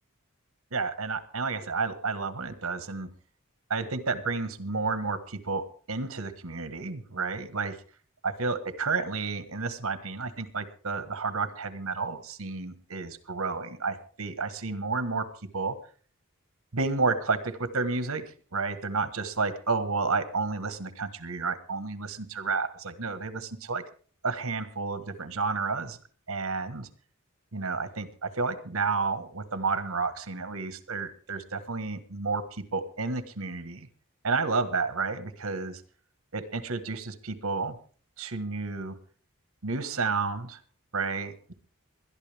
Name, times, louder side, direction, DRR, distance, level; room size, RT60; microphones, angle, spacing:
voice 1, 0.7-3.1 3.7-7.8 8.2-15.3 15.5-15.8 16.7-18.2 18.5-23.8 24.2-26.0 26.3-26.9 27.5-33.9 34.2-35.8 36.3-37.8 38.2-39.0 39.6-40.6 40.9-41.5, right 4 dB, 75° right, 11 dB, 1.5 m, -31 dB
21.0 x 12.0 x 3.5 m, 0.42 s
head